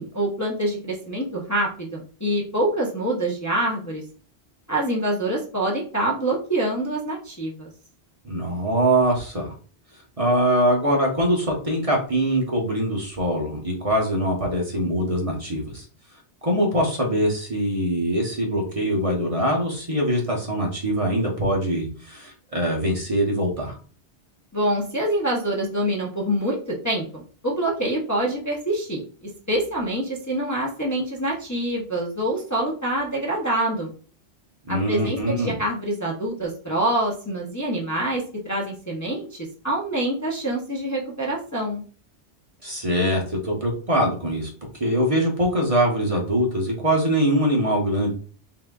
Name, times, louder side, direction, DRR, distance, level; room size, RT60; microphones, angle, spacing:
voice 1, 0.0-4.0 4.7-7.7 24.5-29.0 29.5-33.9 34.7-41.8, right 1 dB, 20° left, -3 dB, 0.7 m, -26 dB
voice 2, 8.2-9.5 10.2-15.8 16.4-23.8 34.7-35.6 42.6-44.5 44.8-48.1, right 1 dB, 35° right, -1 dB, 0.9 m, -23 dB
5.5 x 2.6 x 2.3 m, 0.40 s
omnidirectional pair, 1.1 m